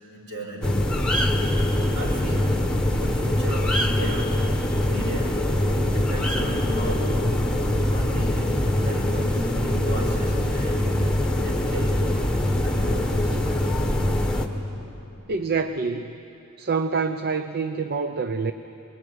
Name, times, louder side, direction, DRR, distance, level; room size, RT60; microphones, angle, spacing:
voice 1, 0.1-1.0 1.9-4.5 4.8-5.6 5.8-7.4 7.7-11.1 11.4-12.1 12.6-13.4, right 1 dB, 65° right, -1 dB, 5.7 m, -35 dB
sound 1, 0.6-14.5, left 1 dB, 5° left, 1.5 m, -23 dB
voice 2, 15.3-16.1 16.6-18.5, right 4 dB, 45° right, 8 dB, 0.6 m, -26 dB
25.5 x 22.0 x 9.6 m, 2.9 s
head